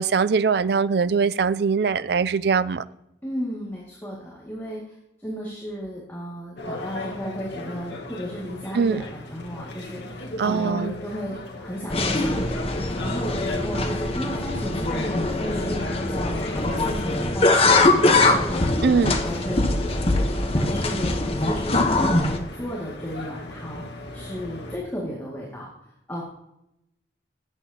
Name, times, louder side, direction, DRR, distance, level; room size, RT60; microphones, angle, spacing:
voice 1, 0.0-2.8 8.7-9.0 10.4-10.9 18.8-19.2, right 5 dB, 60° right, 0.4 m, -22 dB
voice 2, 3.2-20.2 20.5-26.2, equal, 10° left, 2.0 m, -34 dB
sound 1, 6.6-24.8, left 2 dB, 65° left, 1.5 m, -38 dB
sound 2, 11.9-22.4, left 2 dB, 30° left, 0.9 m, -22 dB
18.0 x 8.1 x 2.8 m
head